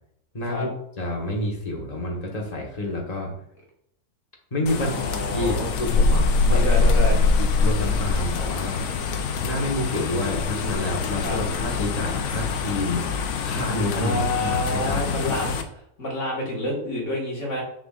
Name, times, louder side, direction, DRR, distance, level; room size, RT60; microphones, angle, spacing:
voice 1, 0.3-0.7 1.0-3.3 4.5-4.9 5.3-6.7 7.3-8.9 9.4-15.5, left 1 dB, 25° left, -1 dB, 1.4 m, -29 dB
sound 1, 4.7-15.6, left 4 dB, 65° left, 1.0 m, -24 dB
voice 2, 4.7-5.7 6.5-7.2 11.2-11.4 13.9-15.6 16.0-17.6, left 1 dB, 50° left, -3 dB, 2.1 m, -28 dB
7.2 x 6.0 x 2.5 m, 0.73 s
omnidirectional pair, 1.6 m